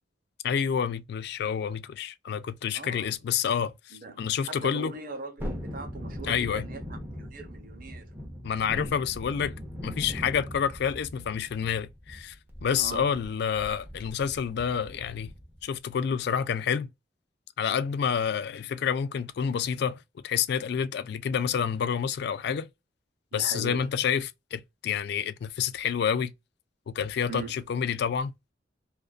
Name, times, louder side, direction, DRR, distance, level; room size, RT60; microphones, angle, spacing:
voice 1, 0.4-4.9 6.2-6.7 8.4-9.5 9.8-12.4 12.6-15.3 15.6-16.9 17.6-20.0 20.2-22.7 23.3-26.3 26.9-28.3, left 7 dB, 65° left, 0.3 m, -28 dB
voice 2, 2.7-3.2 3.9-8.2 12.7-13.0 23.3-23.9 27.3-27.6, right 3 dB, 50° right, 0.7 m, -41 dB
Thunderstorm, 5.4-15.6 16.0-16.1, equal, 10° right, 0.7 m, -40 dB
2.5 x 2.2 x 2.3 m
head